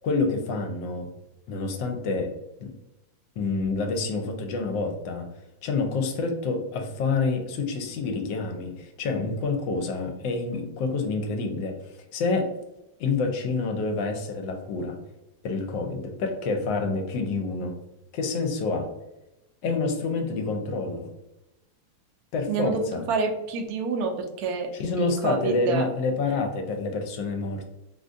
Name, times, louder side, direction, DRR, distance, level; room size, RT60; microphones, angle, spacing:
voice 1, 0.0-1.1 1.5-2.3 2.6-2.7 3.4-5.3 5.6-11.8 12.1-12.5 13.0-15.0 15.4-17.8 18.1-18.9 19.6-21.1 22.3-23.0 24.7-27.7, left 3 dB, 75° left, 5 dB, 1.2 m, -28 dB
voice 2, 22.5-24.1 24.4-24.7 25.0-25.8, right 4 dB, 70° right, 2 dB, 0.9 m, -27 dB
3.7 x 2.5 x 2.5 m, 0.95 s
omnidirectional pair, 2.1 m